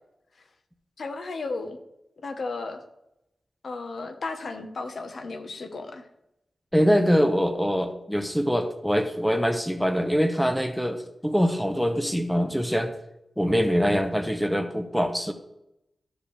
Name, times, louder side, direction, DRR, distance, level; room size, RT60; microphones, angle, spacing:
voice 1, 1.0-1.8 2.2-2.8 3.6-6.0, left 3 dB, 65° left, 6 dB, 1.0 m, -34 dB
voice 2, 6.7-12.9 13.4-15.3, equal, ahead, 6 dB, 0.7 m, -24 dB
13.5 x 5.1 x 3.3 m, 0.84 s
wide cardioid pair, 140°, 0 cm